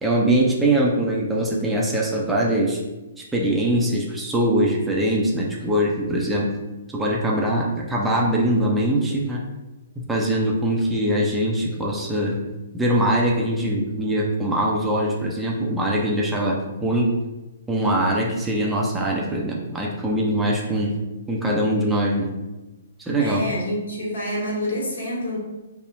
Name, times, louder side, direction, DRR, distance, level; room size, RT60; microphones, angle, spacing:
voice 1, 0.0-2.8 3.3-6.5 6.9-9.4 10.1-12.4 12.7-17.1 17.7-20.9 21.3-22.3 23.1-23.5, right 1 dB, 10° right, -3 dB, 0.5 m, -22 dB
voice 2, 23.2-25.4, equal, 70° left, -3 dB, 1.3 m, -27 dB
3.9 x 2.0 x 2.5 m, 1.1 s
figure-of-eight pair, 125°, 0 cm